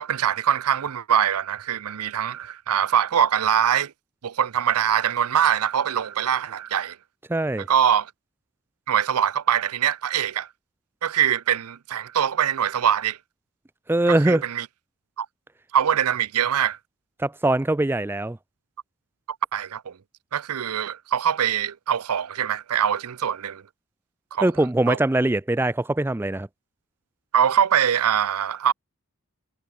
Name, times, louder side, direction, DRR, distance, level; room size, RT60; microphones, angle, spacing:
voice 1, 0.0-3.9 4.2-7.0 7.6-8.1 8.9-10.5 11.0-13.2 14.1-14.7 15.2-15.3 15.7-16.8 19.5-19.9 20.3-23.6 24.3-24.5 24.9-25.0 27.3-28.7, right 9 dB, 90° right, 0.5 m, -23 dB
voice 2, 7.3-7.7 13.9-14.4 17.2-18.4 24.4-26.5, right 1 dB, 10° right, 0.3 m, -22 dB
head